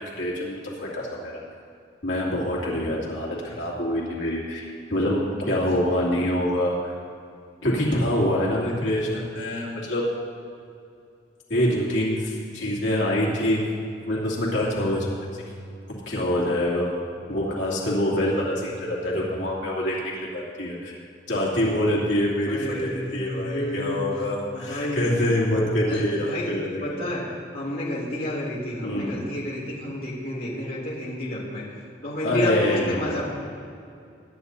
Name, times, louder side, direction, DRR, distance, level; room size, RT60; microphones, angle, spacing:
voice 1, 0.0-1.4 2.0-6.9 7.6-10.1 11.5-13.6 14.1-15.1 16.1-16.9 17.3-20.9 21.3-27.0 28.8-29.1 32.2-33.2, left 1 dB, 85° left, -5 dB, 2.7 m, -25 dB
voice 2, 19.0-19.5 22.5-25.2 25.9-26.5 26.8-33.3, left 1 dB, 50° left, -6 dB, 2.5 m, -31 dB
23.0 x 11.0 x 2.8 m, 2.5 s
head